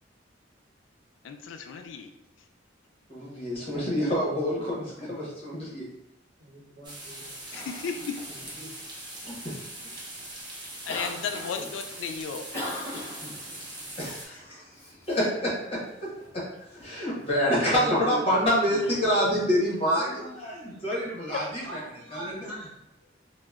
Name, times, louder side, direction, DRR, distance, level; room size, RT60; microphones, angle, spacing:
voice 1, 1.2-2.1 7.5-8.2 10.9-12.4, left 6 dB, 85° left, 7 dB, 0.3 m, -34 dB
voice 2, 3.1-5.9 8.6-8.7 9.2-9.5 14.0-14.7 15.1-16.1 16.3-16.4 16.7-21.8 22.1-22.5, equal, 30° left, -5 dB, 1.0 m, -27 dB
voice 3, 6.4-7.4 16.1-16.3 17.4-18.2 21.6-22.7, right 1 dB, 80° right, -2 dB, 0.8 m, -42 dB
sound 1, 6.8-14.3, right 1 dB, 25° right, 0.6 m, -41 dB
Cough, 7.0-21.5, left 1 dB, 15° left, 0.6 m, -45 dB
3.8 x 2.0 x 2.3 m, 0.83 s
head